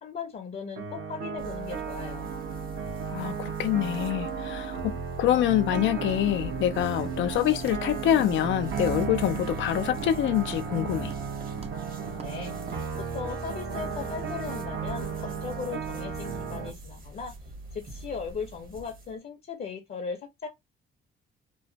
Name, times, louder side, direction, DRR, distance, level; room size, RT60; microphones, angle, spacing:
voice 1, 0.0-2.3 12.2-17.3 17.7-20.5, left 5 dB, 50° left, 0.7 m, -38 dB
sound 1, 0.8-16.7, right 6 dB, 70° right, 1.0 m, -34 dB
sound 2, 1.4-19.2, right 2 dB, 45° right, 1.1 m, -43 dB
voice 2, 3.1-11.1, left 11 dB, 75° left, 0.4 m, -26 dB
Walk footsteps, 7.6-7.9 8.2-8.5 8.7-9.1 9.3-10.2 10.5-10.7 11.0-11.3 11.6-11.8 12.1-12.3 12.7-12.8, right 5 dB, 30° right, 0.5 m, -45 dB
3.0 x 2.1 x 2.6 m
cardioid pair, 90°, 20 cm